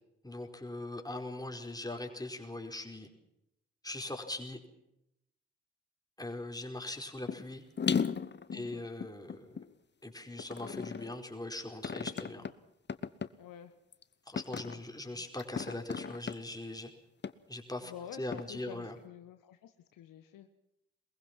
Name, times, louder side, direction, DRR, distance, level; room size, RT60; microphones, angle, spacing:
voice 1, 0.2-3.1 3.8-4.6 6.2-7.6 8.5-9.5 10.0-12.4 14.3-16.9 17.5-17.9 18.2-19.0, left 2 dB, 10° left, 3 dB, 4.8 m, -41 dB
sound 1, 7.3-7.4 7.8-9.7 10.4-11.2 11.8-12.5 12.9-13.3 13.9-14.0 14.4-14.8 15.4-16.3 17.2-17.3 18.3-18.4, left 6 dB, 30° left, 1.2 m, -35 dB
voice 2, 8.5-8.8 12.0-12.5 13.4-13.7 14.5-15.2 17.8-20.5, left 9 dB, 60° left, 8 dB, 1.4 m, -50 dB
23.0 x 21.5 x 6.1 m, 0.84 s
figure-of-eight pair, 40°, 37 cm